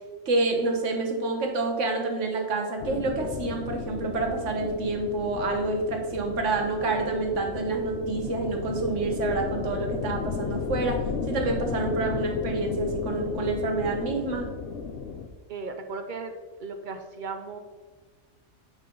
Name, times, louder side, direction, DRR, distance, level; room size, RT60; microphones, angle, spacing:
voice 1, 0.3-14.5, right 3 dB, 75° right, 2 dB, 1.4 m, -28 dB
sound 1, 2.8-15.3, left 5 dB, 70° left, 0.9 m, -34 dB
voice 2, 15.5-16.3 16.6-17.6, right 4 dB, 55° right, 7 dB, 0.6 m, -36 dB
9.3 x 4.0 x 3.8 m, 1.4 s
omnidirectional pair, 1.3 m